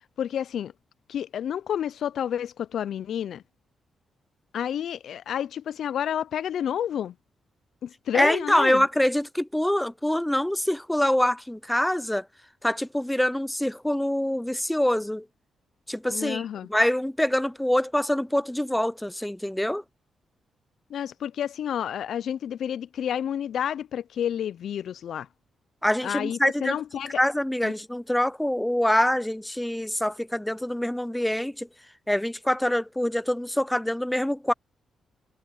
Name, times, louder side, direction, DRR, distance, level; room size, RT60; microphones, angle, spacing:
voice 1, 0.2-0.7 1.1-3.4 4.5-7.1 7.8-8.8 16.1-16.7 20.9-25.3 26.0-27.2 27.6-27.7, left 9 dB, 70° left, 0.4 m, -30 dB
voice 2, 8.1-12.3 12.6-15.3 15.9-16.4 16.7-19.8 25.8-26.8 27.0-31.7 32.1-34.5, left 1 dB, 5° left, 0.4 m, -25 dB
cardioid pair, 115°, 0 cm